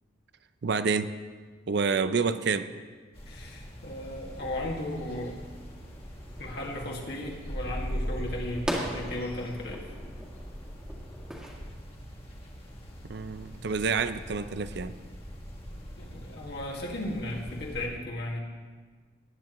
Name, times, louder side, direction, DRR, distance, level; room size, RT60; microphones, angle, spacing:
voice 1, 0.6-1.2 1.7-2.7 13.0-14.9, right 5 dB, 60° right, 12 dB, 0.5 m, -28 dB
sound 1, 3.1-17.9, equal, 30° left, 1.7 m, -41 dB
voice 2, 3.3-5.4 6.4-9.9 16.0-18.4, left 1 dB, 60° left, -1 dB, 1.9 m, -36 dB
sound 2, 4.4-11.5, equal, 5° right, 1.9 m, -41 dB
18.5 x 9.8 x 3.1 m, 1.5 s
head